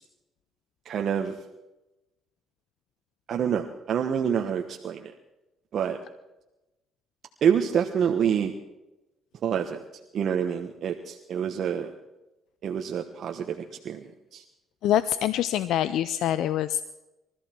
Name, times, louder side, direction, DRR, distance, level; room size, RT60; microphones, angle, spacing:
voice 1, 0.8-1.4 3.3-5.1 5.7-6.0 7.4-8.5 9.4-9.8 10.1-11.9 12.6-14.4, right 8 dB, 60° right, 3 dB, 1.2 m, -27 dB
voice 2, 14.8-16.8, left 11 dB, 80° left, 14 dB, 0.5 m, -25 dB
22.5 x 14.0 x 4.5 m, 0.98 s
cardioid pair, 90°, 0 cm